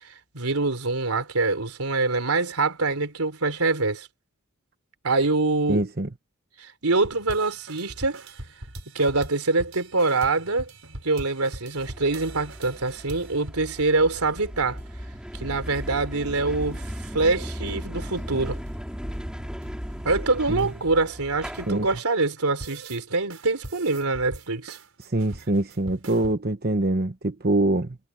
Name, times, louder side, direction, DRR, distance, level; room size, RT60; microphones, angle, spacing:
voice 1, 0.0-4.1 5.0-5.8 6.6-8.2 9.0-10.7 11.0-14.8 15.3-16.9 17.1-18.6 20.0-24.8, right 3 dB, 90° right, 3.5 m, -25 dB
voice 2, 5.7-6.1 20.5-20.6 21.7-21.9 25.1-28.0, right 2 dB, 45° right, 1.0 m, -24 dB
sound 1, 6.9-13.9 14.2-14.3 14.5-15.2 15.5-15.9 16.1-17.8 18.0-22.0 22.4-23.0 23.3-26.3, right 1 dB, 70° right, 6.4 m, -43 dB
sound 2, 11.8-22.0, equal, 5° right, 4.9 m, -36 dB
head